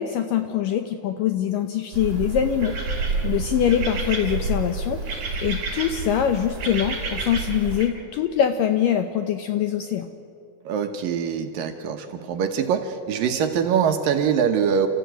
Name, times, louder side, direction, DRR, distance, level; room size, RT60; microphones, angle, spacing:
voice 1, 0.0-2.8 3.2-10.1, left 9 dB, 75° left, 8 dB, 2.0 m, -24 dB
sound 1, 1.9-7.9, right 3 dB, 50° right, 6.2 m, -29 dB
voice 2, 10.7-14.9, right 7 dB, 70° right, 6 dB, 2.4 m, -23 dB
29.5 x 14.5 x 9.2 m, 2.5 s
omnidirectional pair, 4.8 m